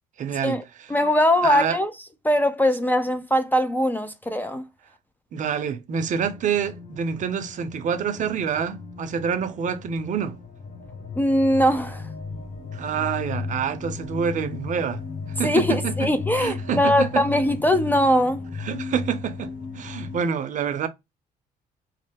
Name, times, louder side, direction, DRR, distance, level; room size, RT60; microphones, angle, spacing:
voice 1, 0.2-0.9 1.4-1.8 5.3-10.4 12.7-15.0 15.4-16.1 16.4-17.2 18.6-20.9, right 7 dB, 50° right, 0.6 m, -27 dB
voice 2, 0.9-1.9 2.2-4.7 11.2-12.1 15.4-18.4, left 1 dB, 10° left, 0.4 m, -21 dB
sound 1, 6.0-20.2, left 4 dB, 60° left, 1.2 m, -35 dB
3.1 x 2.1 x 3.2 m
cardioid pair, 110°, 17 cm